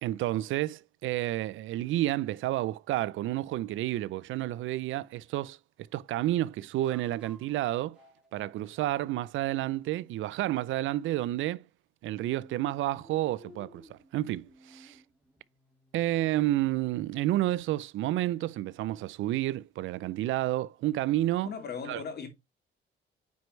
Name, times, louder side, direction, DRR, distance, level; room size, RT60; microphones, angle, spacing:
voice 1, 0.0-5.6 5.9-8.0 8.3-11.6 12.0-15.0 15.9-21.5 21.9-22.0, right 15 dB, 75° right, 0.5 m, -30 dB
sound 1, 6.7-10.1 12.1-17.0, equal, 5° right, 3.4 m, -57 dB
voice 2, 21.4-22.3, left 6 dB, 55° left, 2.8 m, -37 dB
9.4 x 4.7 x 3.2 m
cardioid pair, 100°, 20 cm